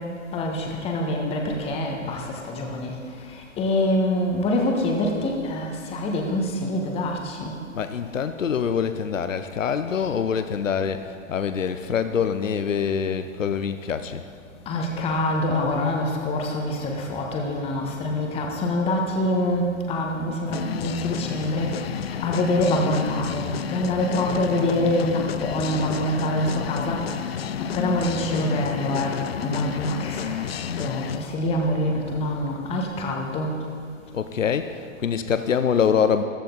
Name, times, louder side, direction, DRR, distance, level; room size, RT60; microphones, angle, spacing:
voice 1, 0.3-2.9 3.3-7.5 14.7-27.2 27.6-33.6, left 1 dB, 15° left, 1 dB, 1.4 m, -25 dB
voice 2, 7.7-14.3 34.1-36.2, left 7 dB, 70° left, 10 dB, 0.8 m, -25 dB
sound 1, 20.5-31.3, left 9 dB, 50° left, 0.4 m, -31 dB
14.5 x 14.0 x 4.0 m, 2.3 s
figure-of-eight pair, 125°, 40 cm